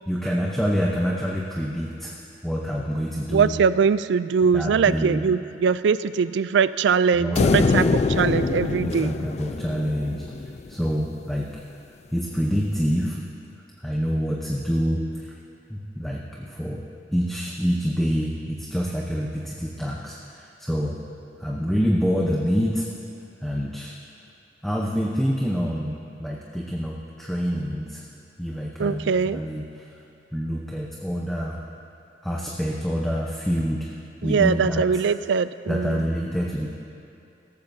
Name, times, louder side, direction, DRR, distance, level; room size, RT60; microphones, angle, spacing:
voice 1, 0.1-2.2 2.4-3.5 4.5-5.3 7.1-8.4 8.8-10.2 10.7-11.5 12.1-13.2 13.8-15.3 15.7-16.8 17.1-21.0 21.4-22.9 23.4-23.9 24.6-28.0 28.4-29.9 30.3-31.6 32.2-33.9 34.2-34.8 35.7-36.7, equal, ahead, -3 dB, 0.8 m, -26 dB
voice 2, 3.3-9.1 28.8-29.4 34.2-36.0, right 6 dB, 80° right, 15 dB, 0.3 m, -22 dB
sound 1, 7.4-10.7, left 4 dB, 40° left, 0.3 m, -24 dB
17.0 x 14.5 x 2.7 m, 2.6 s
head